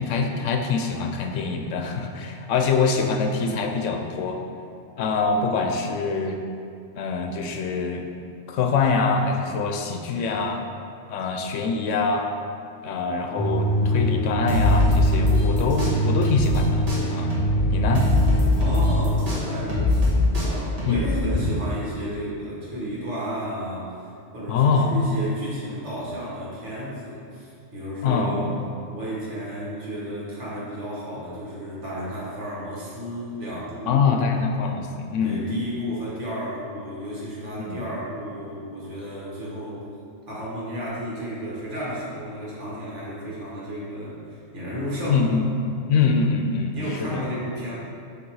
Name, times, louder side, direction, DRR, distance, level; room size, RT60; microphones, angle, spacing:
voice 1, 0.0-4.4 5.0-6.4 7.0-8.0 8.5-10.6 11.1-12.3 12.8-18.1 20.9-21.2 24.5-25.0 28.0-28.6 33.9-35.5 37.6-37.8 45.1-47.2, left 4 dB, 80° left, 4 dB, 1.0 m, -24 dB
sound 1, 13.4-19.2, right 2 dB, 40° left, 0.5 m, -24 dB
sound 2, 14.5-16.6 16.9-21.4, left 2 dB, 30° right, 1.3 m, -22 dB
voice 2, 18.6-23.9 24.3-28.5 28.9-34.0 35.2-39.9 40.3-45.4 46.7-47.8, equal, 70° right, -7 dB, 1.8 m, -32 dB
7.3 x 3.3 x 4.8 m, 2.5 s
omnidirectional pair, 1.3 m